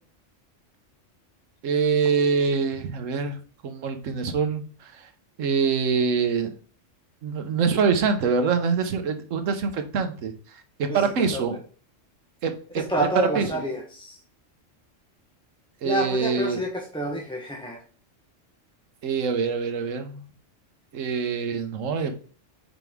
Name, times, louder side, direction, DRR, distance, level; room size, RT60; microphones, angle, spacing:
voice 1, 1.6-5.0 5.4-6.5 7.2-10.3 10.8-11.6 12.4-13.5 15.8-16.6 19.0-20.2 20.9-22.1, right 5 dB, 85° right, 7 dB, 1.2 m, -25 dB
voice 2, 10.9-11.4 12.8-14.2 15.8-17.8, equal, 5° left, 0 dB, 0.9 m, -28 dB
5.9 x 4.6 x 3.5 m, 0.41 s
omnidirectional pair, 1.3 m